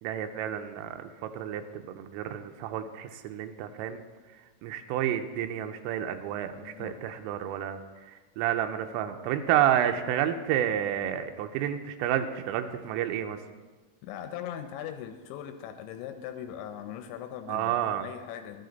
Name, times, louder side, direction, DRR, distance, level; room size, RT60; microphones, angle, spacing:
voice 1, 0.0-4.0 4.6-7.8 8.1-13.4 17.5-18.1, right 10 dB, 90° right, 6 dB, 3.2 m, -30 dB
voice 2, 6.6-7.0 14.0-18.7, left 10 dB, 80° left, 7 dB, 2.7 m, -40 dB
13.0 x 11.5 x 4.0 m, 1.3 s
omnidirectional pair, 5.7 m